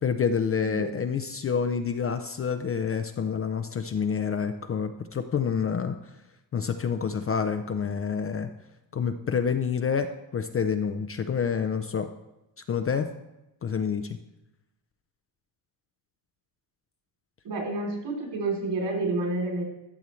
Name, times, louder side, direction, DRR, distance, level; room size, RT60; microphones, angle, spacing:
voice 1, 0.0-5.9 6.5-8.5 8.9-12.1 12.7-13.1 13.6-14.2, left 6 dB, 30° left, 8 dB, 0.5 m, -28 dB
voice 2, 0.6-1.0 17.4-19.6, right 2 dB, 65° right, 0 dB, 3.5 m, -29 dB
12.5 x 6.9 x 3.1 m, 0.93 s
cardioid pair, 115°, 45 cm